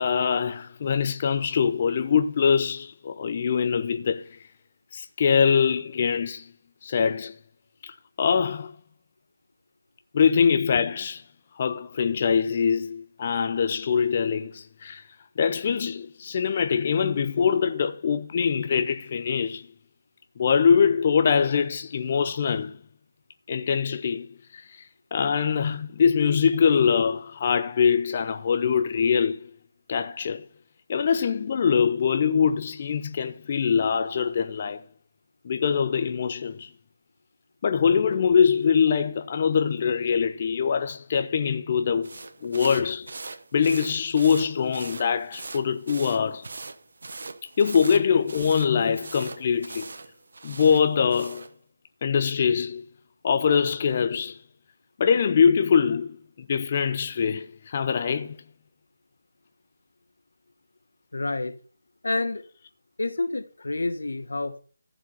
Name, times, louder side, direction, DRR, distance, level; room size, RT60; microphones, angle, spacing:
voice 1, 0.0-4.2 4.9-6.5 6.8-7.3 7.8-8.7 10.1-11.2 11.6-15.0 15.4-19.6 20.4-22.7 23.5-24.3 24.5-24.6 25.1-29.5 29.9-30.4 30.9-34.8 35.4-36.7 37.6-42.1 42.4-43.1 43.5-46.5 47.6-49.9 50.4-51.5 52.0-52.8 53.2-54.4 55.0-56.2 56.5-58.4, left 6 dB, 30° left, 0.5 m, -23 dB
sound 1, 42.0-51.5, right 3 dB, 60° right, 0.9 m, -41 dB
voice 2, 61.1-61.5 62.0-62.4 63.0-64.6, left 2 dB, 80° left, 1.4 m, -28 dB
14.5 x 5.0 x 5.8 m
figure-of-eight pair, 170°, 0 cm